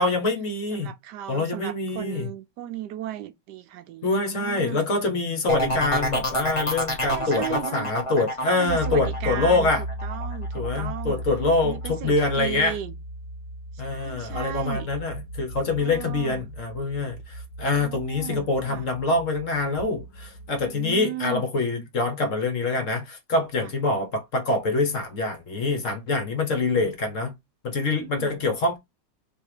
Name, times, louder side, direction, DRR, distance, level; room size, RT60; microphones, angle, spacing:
voice 1, 0.0-0.9 1.3-2.3 4.0-9.8 10.5-12.8 13.8-27.3 27.6-28.8, left 3 dB, 50° left, 1.2 m, -25 dB
voice 2, 0.7-4.9 5.7-5.8 7.1-7.9 8.4-9.7 10.0-11.2 11.6-12.9 13.7-14.9 15.8-16.4 17.7-18.9 20.6-21.5 28.0-28.4, right 11 dB, 75° right, 1.1 m, -36 dB
sound 1, 5.5-11.1 11.5-12.0, left 1 dB, 20° left, 1.2 m, -28 dB
sound 2, 8.7-20.7, right 1 dB, 85° left, 1.5 m, -36 dB
3.5 x 2.9 x 4.7 m
omnidirectional pair, 2.0 m